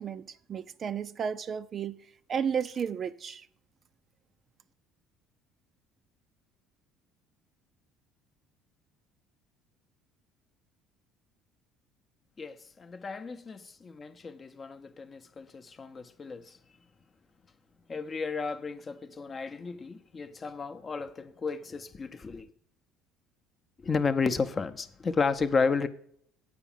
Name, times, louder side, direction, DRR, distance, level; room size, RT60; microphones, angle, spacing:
voice 1, 0.0-2.0 2.3-3.5, right 7 dB, 35° right, 0.4 m, -33 dB
voice 2, 12.4-16.5 17.9-22.5 23.8-25.9, left 4 dB, 30° left, 0.7 m, -32 dB
8.2 x 4.9 x 7.3 m
cardioid pair, 115°, 0 cm